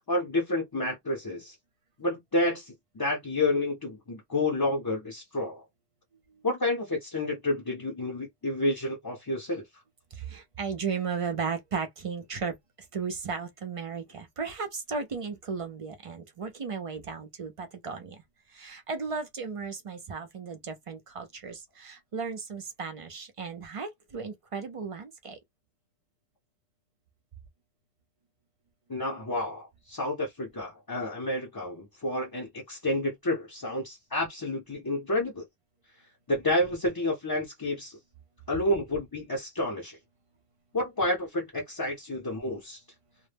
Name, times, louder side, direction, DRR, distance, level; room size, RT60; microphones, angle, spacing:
voice 1, 0.1-1.5 2.0-5.6 6.4-9.6 28.9-35.4 36.3-38.0 38.5-40.0 40.7-42.8, left 1 dB, 30° left, 0.5 m, -30 dB
voice 2, 10.1-12.6 12.9-18.2 18.5-25.4, right 5 dB, 50° right, 0.4 m, -35 dB
2.1 x 2.0 x 3.2 m
omnidirectional pair, 1.1 m